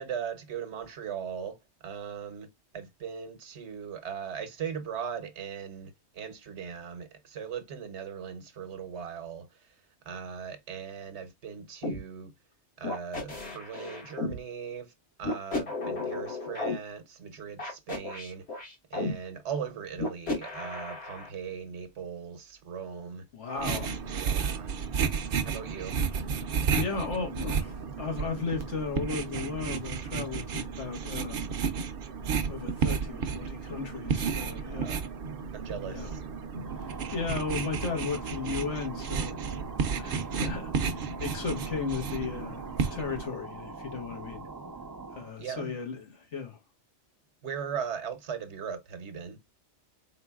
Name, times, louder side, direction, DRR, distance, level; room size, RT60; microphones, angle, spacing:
voice 1, 0.0-1.6 1.8-2.5 2.7-9.5 10.1-12.3 12.8-14.9 15.2-18.5 18.9-23.2 23.6-24.7 25.4-26.3 34.6-35.0 35.5-36.2 45.4-45.7 47.4-49.4, right 7 dB, 75° right, 1.1 m, -39 dB
sound 1, 11.8-12.0 12.8-14.4 15.2-16.7 17.6-19.1 20.0-21.3, left 2 dB, 65° left, 1.8 m, -33 dB
voice 2, 23.3-24.0 26.7-31.6 32.4-35.0 35.9-36.2 36.7-39.4 40.0-42.7 42.9-44.5 45.1-46.6, left 5 dB, 85° left, 1.7 m, -35 dB
sound 2, 23.6-43.2, right 6 dB, 55° right, 0.7 m, -32 dB
sound 3, 36.5-45.4, right 3 dB, 30° right, 0.4 m, -43 dB
4.3 x 3.8 x 2.2 m
omnidirectional pair, 1.2 m